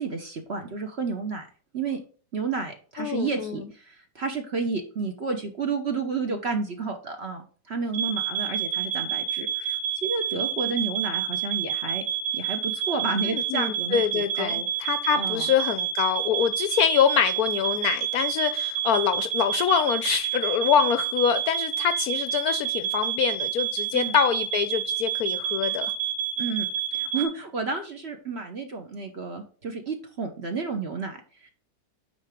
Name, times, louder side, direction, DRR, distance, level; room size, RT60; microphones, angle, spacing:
voice 1, 0.0-1.5 1.7-2.0 2.3-12.0 12.3-14.7 15.1-15.5 23.9-24.2 26.4-26.7 26.9-31.5, right 4 dB, 45° right, 1.0 m, -31 dB
voice 2, 3.0-3.7 13.2-25.9, left 8 dB, 70° left, 0.9 m, -25 dB
sound 1, 7.9-27.3, right 9 dB, 65° right, 1.9 m, -29 dB
9.1 x 3.9 x 3.6 m
omnidirectional pair, 1.9 m